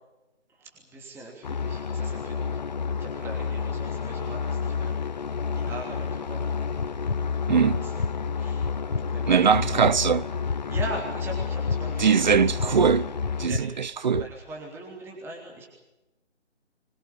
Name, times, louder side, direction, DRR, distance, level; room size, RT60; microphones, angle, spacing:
voice 1, 0.5-2.6 3.0-5.0 5.5-6.8 7.6-8.0 8.3-9.6 10.7-12.7 13.4-13.7 14.2-15.7, right 1 dB, 5° right, 3.0 m, -40 dB
Double Prop plane, 1.4-13.5, left 5 dB, 40° left, 0.8 m, -30 dB
sound 1, 6.8-7.2 7.7-8.1 8.6-9.0 9.5-10.0 10.5-10.9 11.4-11.8 12.3-12.7 13.2-13.6 14.1-14.3, left 4 dB, 75° left, 1.7 m, -29 dB
voice 2, 7.5-7.9 9.3-10.3 12.0-13.1 13.4-14.2, right 6 dB, 40° right, 0.8 m, -21 dB
25.0 x 22.5 x 7.2 m
figure-of-eight pair, 150°, 35 cm